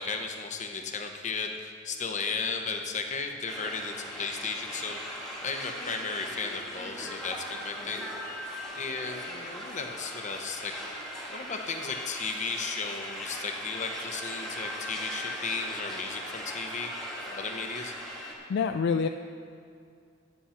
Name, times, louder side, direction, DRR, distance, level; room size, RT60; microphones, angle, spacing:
voice 1, 0.0-8.1 8.4-10.7 11.3-16.9 17.2-17.9, left 4 dB, 40° left, 4 dB, 0.9 m, -35 dB
sound 1, 3.5-18.3, equal, 5° left, 1.8 m, -39 dB
voice 2, 18.5-19.1, left 5 dB, 60° left, 7 dB, 0.3 m, -26 dB
10.0 x 8.5 x 5.7 m, 2.3 s
head